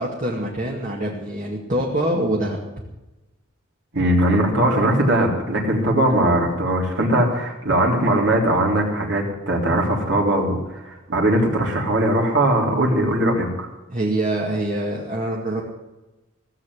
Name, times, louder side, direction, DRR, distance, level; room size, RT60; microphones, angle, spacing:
voice 1, 0.0-2.6 13.9-15.6, right 1 dB, 40° right, -3 dB, 2.2 m, -24 dB
voice 2, 3.9-13.7, right 1 dB, 65° right, -1 dB, 3.8 m, -20 dB
17.0 x 7.7 x 9.9 m, 1.0 s
head